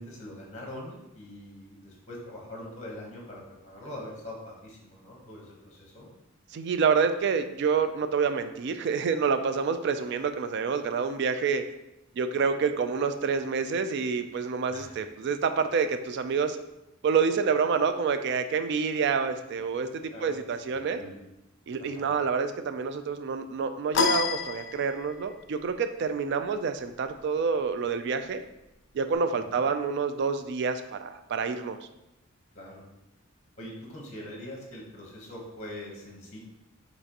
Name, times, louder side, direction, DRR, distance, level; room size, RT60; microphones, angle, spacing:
voice 1, 0.0-6.1 14.7-14.9 20.1-20.3 20.7-21.2 21.8-22.1 29.5-29.6 32.5-32.8 33.6-36.4, left 1 dB, 35° left, -1 dB, 1.0 m, -43 dB
voice 2, 6.5-11.6 12.2-16.6 17.0-19.9 20.2-21.0 21.7-28.4 28.9-31.8, right 5 dB, 55° right, 9 dB, 0.3 m, -28 dB
sound 1, 23.9-25.3, left 5 dB, 60° left, 0.4 m, -28 dB
5.7 x 3.0 x 2.9 m, 0.92 s
head